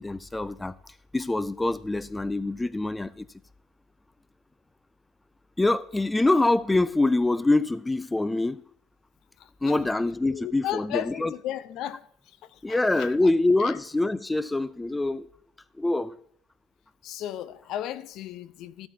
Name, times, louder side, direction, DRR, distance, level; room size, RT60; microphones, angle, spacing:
voice 1, 0.0-3.3 5.6-8.6 9.6-11.3 12.6-15.3 15.8-16.2, left 2 dB, 10° left, 0.3 m, -25 dB
voice 2, 9.4-9.8 10.3-12.0 12.5-13.1 13.6-13.8 17.0-18.9, left 12 dB, 60° left, 0.6 m, -35 dB
14.0 x 8.3 x 2.7 m
cardioid pair, 120°, 0 cm